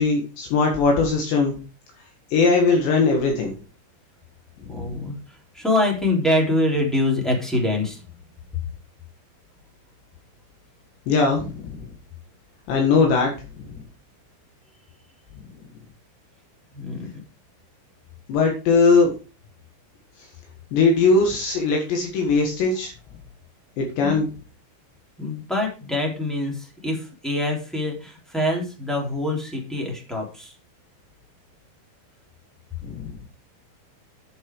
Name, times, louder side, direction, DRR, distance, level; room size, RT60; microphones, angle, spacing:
voice 1, 0.0-1.5 2.3-3.5 4.6-4.9 11.1-11.9 12.7-13.3 13.6-13.7 18.3-19.1 20.7-22.9 23.8-24.3 32.8-33.1, left 4 dB, 65° left, 2 dB, 3.8 m, -20 dB
voice 2, 4.7-8.0 16.7-17.1 24.0-24.2 25.2-30.5, left 1 dB, ahead, -1 dB, 2.8 m, -25 dB
11.0 x 7.1 x 4.8 m, 0.32 s
omnidirectional pair, 5.6 m